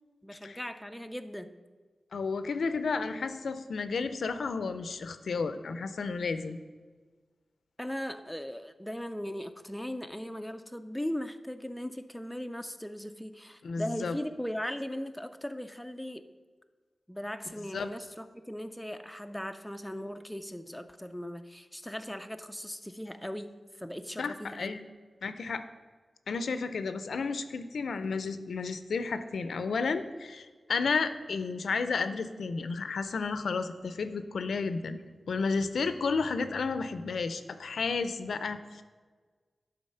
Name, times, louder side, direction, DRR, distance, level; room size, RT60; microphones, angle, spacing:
voice 1, 0.2-1.5 7.8-16.3 17.1-24.8, equal, 5° left, 8 dB, 0.4 m, -38 dB
voice 2, 2.1-6.6 13.6-14.2 17.7-17.9 24.2-24.8 25.2-25.6 26.3-35.0 35.3-38.8, left 4 dB, 85° left, 11 dB, 0.5 m, -32 dB
11.0 x 4.0 x 5.5 m, 1.5 s
wide cardioid pair, 135°, 0 cm